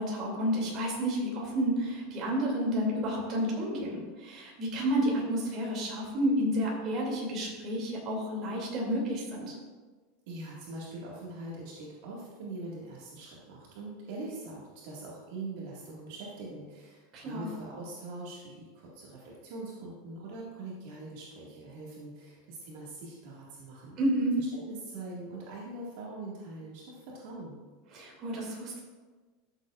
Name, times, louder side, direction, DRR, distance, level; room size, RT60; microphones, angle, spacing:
voice 1, 0.0-9.5 17.1-17.5 24.0-24.3 27.9-28.8, equal, 30° right, -3 dB, 2.6 m, -30 dB
voice 2, 10.3-24.0 24.4-27.6, right 2 dB, 60° right, -5 dB, 1.9 m, -43 dB
13.5 x 7.2 x 2.5 m, 1.4 s
supercardioid pair, 170°, 0 cm